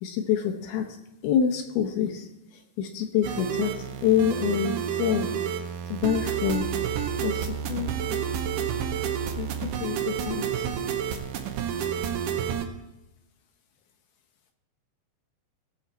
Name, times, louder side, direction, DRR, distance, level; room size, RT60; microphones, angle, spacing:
voice 1, 0.0-0.9 1.2-2.3 2.8-3.7 4.0-5.3 5.9-6.7 7.2-8.2 9.3-9.5 9.8-10.6, left 9 dB, 75° left, 5 dB, 2.5 m, -26 dB
sound 1, 3.2-12.6, right 8 dB, 90° right, 1.8 m, -29 dB
18.5 x 7.1 x 4.3 m, 0.93 s
omnidirectional pair, 5.1 m